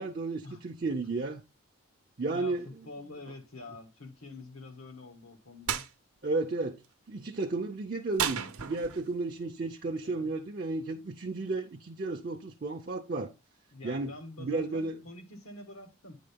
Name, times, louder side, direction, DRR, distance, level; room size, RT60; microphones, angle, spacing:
voice 1, 0.0-1.4 2.2-2.6 6.2-6.8 7.1-13.3 13.8-15.0, right 3 dB, 40° right, 0.5 m, -33 dB
voice 2, 2.3-5.9 10.0-10.3 13.7-16.2, left 2 dB, 85° left, 1.7 m, -46 dB
sound 1, 5.7-5.9 8.2-9.1, right 8 dB, 90° right, 0.7 m, -32 dB
9.2 x 3.9 x 3.5 m
head